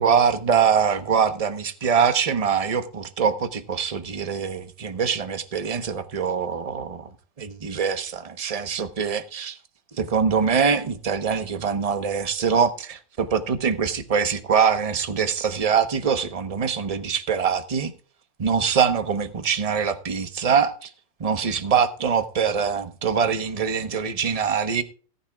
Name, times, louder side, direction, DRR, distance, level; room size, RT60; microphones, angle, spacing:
voice 1, 0.0-7.1 7.4-9.6 10.0-17.9 18.4-20.9 21.2-24.8, right 6 dB, 30° right, 0.8 m, -23 dB
18.0 x 9.7 x 2.4 m
omnidirectional pair, 2.0 m